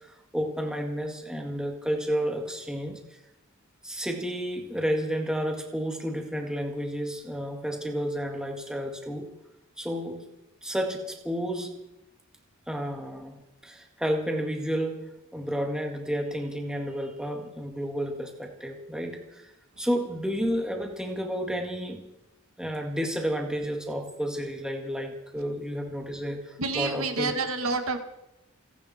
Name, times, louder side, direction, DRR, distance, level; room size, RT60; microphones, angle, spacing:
voice 1, 0.0-3.2 3.8-9.3 9.8-10.3 10.6-11.7 12.7-19.5 19.8-22.0 22.6-27.3, equal, 5° right, 2 dB, 2.0 m, -31 dB
voice 2, 26.6-28.0, right 3 dB, 80° right, 6 dB, 1.9 m, -28 dB
29.0 x 11.0 x 4.4 m, 0.89 s
head